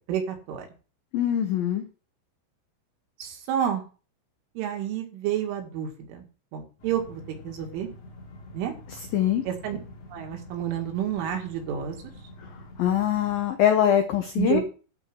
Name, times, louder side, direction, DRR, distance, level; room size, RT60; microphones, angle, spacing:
voice 1, 0.1-0.7 3.2-3.8 4.6-6.3 6.5-7.9 8.5-8.7 9.5-9.8 10.1-12.0 14.4-14.6, right 10 dB, 75° right, 2 dB, 4.5 m, -29 dB
voice 2, 1.1-1.8 9.1-9.4 12.8-14.6, left 10 dB, 80° left, 5 dB, 2.0 m, -23 dB
sound 1, 6.8-13.4, left 1 dB, 50° left, 2.0 m, -46 dB
12.0 x 4.8 x 7.9 m, 0.36 s
omnidirectional pair, 5.7 m